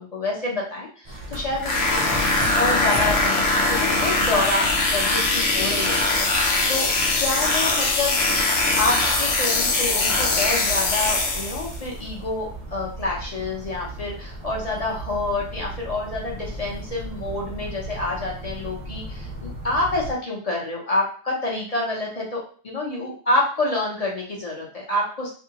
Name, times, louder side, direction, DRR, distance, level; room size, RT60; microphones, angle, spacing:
voice 1, 0.0-1.8 2.6-6.9 7.2-8.1 8.7-25.3, left 2 dB, 35° left, -3 dB, 0.8 m, -27 dB
sound 1, 1.0-20.1, right 1 dB, 30° right, 0.7 m, -36 dB
sound 2, 1.6-11.8, left 2 dB, 70° left, 1.0 m, -22 dB
2.7 x 2.7 x 2.9 m, 0.43 s
omnidirectional pair, 1.3 m